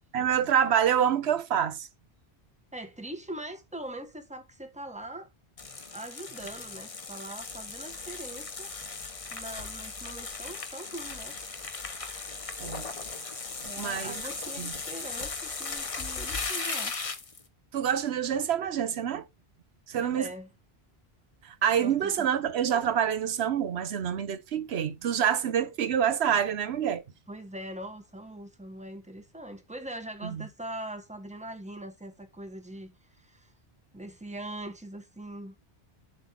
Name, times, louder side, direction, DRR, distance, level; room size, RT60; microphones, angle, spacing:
voice 1, 0.1-1.9 12.6-12.9 13.8-14.2 14.6-14.7 17.7-19.3 19.9-20.3 21.4-27.0 30.2-30.4, right 8 dB, 85° right, 1.0 m, -27 dB
voice 2, 2.7-5.3 5.9-8.7 9.3-11.4 13.6-17.0 20.0-20.5 21.8-22.3 27.3-33.5 33.9-35.5, right 1 dB, 5° right, 1.4 m, -42 dB
sound 1, 5.6-17.4, left 4 dB, 35° left, 1.0 m, -37 dB
7.7 x 3.6 x 5.7 m
omnidirectional pair, 1.1 m